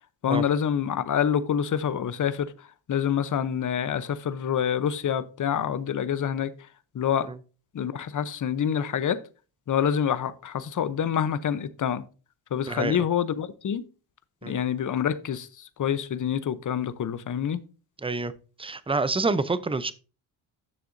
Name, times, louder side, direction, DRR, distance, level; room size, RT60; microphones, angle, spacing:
voice 1, 0.2-6.5 6.9-7.3 7.7-9.2 9.7-12.0 12.5-13.8 14.4-17.6, left 8 dB, 40° left, 0.8 m, -27 dB
voice 2, 12.6-13.0 14.4-14.6 18.0-18.3 18.6-19.9, right 3 dB, 10° right, 0.6 m, -27 dB
10.0 x 6.8 x 2.7 m
cardioid pair, 85°, 49 cm